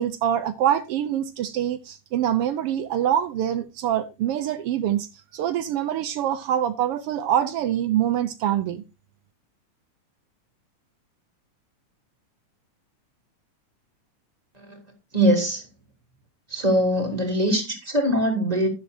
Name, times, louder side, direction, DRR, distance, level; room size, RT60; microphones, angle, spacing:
voice 1, 0.0-8.8, right 10 dB, 85° right, 1.3 m, -25 dB
voice 2, 15.1-15.6 16.5-18.7, equal, 10° right, 3.2 m, -22 dB
11.5 x 11.5 x 2.7 m
omnidirectional pair, 3.4 m